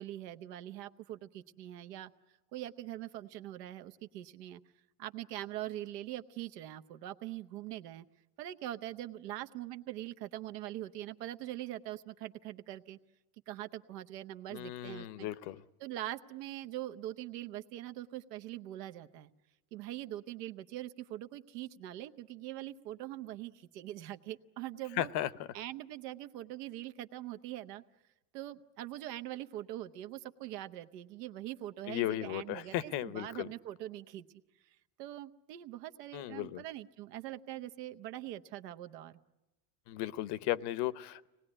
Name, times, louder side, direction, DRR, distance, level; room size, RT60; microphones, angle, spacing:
voice 1, 0.0-2.1 2.5-4.6 5.0-8.1 8.4-13.0 13.5-15.3 15.8-19.3 19.7-25.1 25.5-27.8 28.3-34.3 34.6-39.2, right 14 dB, 85° right, 9 dB, 1.0 m, -43 dB
voice 2, 14.5-15.6 25.0-25.3 31.9-33.5 36.1-36.6 39.9-41.3, left 14 dB, 60° left, 18 dB, 0.9 m, -35 dB
24.5 x 19.5 x 9.8 m, 1.0 s
supercardioid pair, 100°, 47 cm